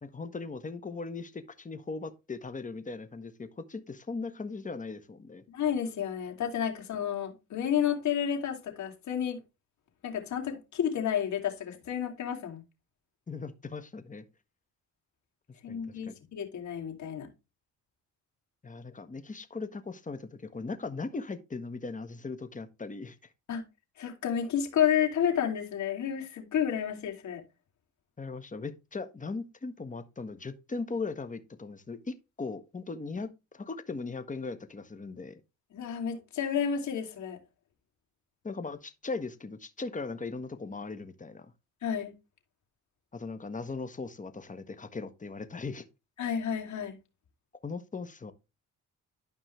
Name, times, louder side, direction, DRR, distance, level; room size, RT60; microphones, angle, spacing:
voice 1, 0.0-5.4 13.3-14.2 15.7-16.1 18.6-23.2 28.2-35.4 38.4-41.5 43.1-45.8 47.6-48.3, left 4 dB, 25° left, 1.5 m, -38 dB
voice 2, 5.5-9.4 10.0-12.6 15.6-17.3 23.5-23.6 24.0-27.4 35.7-37.4 41.8-42.1 46.2-47.0, left 8 dB, 65° left, 3.1 m, -31 dB
12.0 x 5.4 x 3.3 m
cardioid pair, 90°, 30 cm